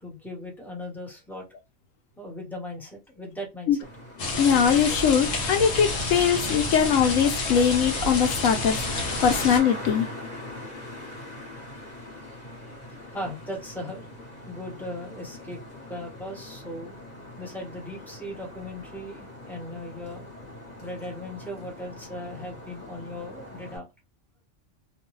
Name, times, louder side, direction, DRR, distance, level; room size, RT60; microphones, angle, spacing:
voice 1, 0.0-1.4 2.2-3.7 10.6-10.7 13.1-15.6 15.9-16.9 17.4-20.3 20.8-23.9, left 1 dB, ahead, 0.9 m, -38 dB
Traffic noise roadway noise, 3.8-23.8, left 1 dB, 35° left, 1.2 m, -42 dB
sound 1, 4.2-9.6, left 2 dB, 65° left, 1.1 m, -29 dB
voice 2, 4.4-10.1, left 7 dB, 90° left, 1.1 m, -22 dB
2.6 x 2.2 x 3.1 m
omnidirectional pair, 1.3 m